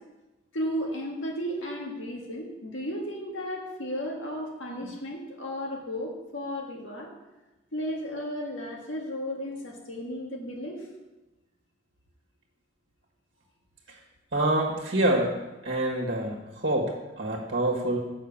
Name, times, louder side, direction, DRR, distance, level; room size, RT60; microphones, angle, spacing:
voice 1, 0.5-7.1 7.7-10.8, equal, 90° left, 0 dB, 1.8 m, -34 dB
voice 2, 14.3-15.3 15.6-18.0, right 1 dB, 60° right, -1 dB, 1.4 m, -26 dB
6.6 x 5.9 x 7.1 m, 1.1 s
head